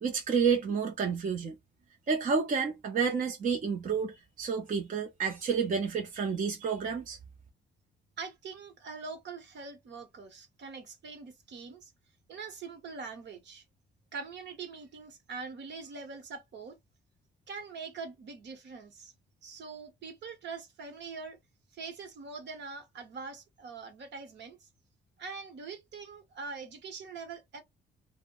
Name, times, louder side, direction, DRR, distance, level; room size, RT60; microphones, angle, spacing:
voice 1, 0.0-1.6 2.1-7.2, right 6 dB, 40° right, 0.7 m, -30 dB
voice 2, 8.2-11.9 12.3-13.6 14.1-16.8 17.5-19.1 19.4-21.4 21.7-24.7 25.2-27.6, right 4 dB, 65° right, 1.0 m, -43 dB
2.2 x 2.1 x 3.7 m
cardioid pair, 90°, 20 cm